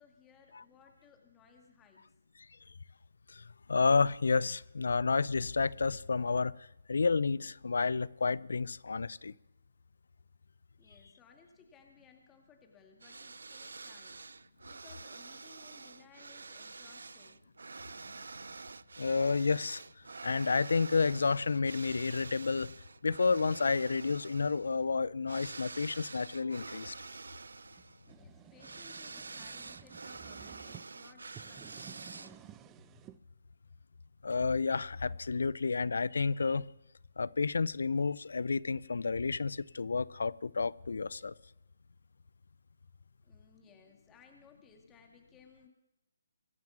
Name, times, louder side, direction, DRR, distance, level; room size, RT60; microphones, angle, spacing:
voice 1, 0.0-2.1 10.8-14.3 14.7-17.4 28.1-32.6 43.2-45.7, left 6 dB, 15° left, 2.2 m, -61 dB
voice 2, 3.3-6.6 6.9-9.3 19.0-19.8 20.2-22.7 23.0-26.9 34.2-36.7 37.2-41.3, left 4 dB, 70° left, 0.5 m, -30 dB
sound 1, 13.0-32.6, right 4 dB, 75° right, 0.5 m, -48 dB
sound 2, 27.8-30.8 31.3-33.2, right 12 dB, 15° right, 0.6 m, -54 dB
23.5 x 9.3 x 6.0 m
figure-of-eight pair, 145°, 0 cm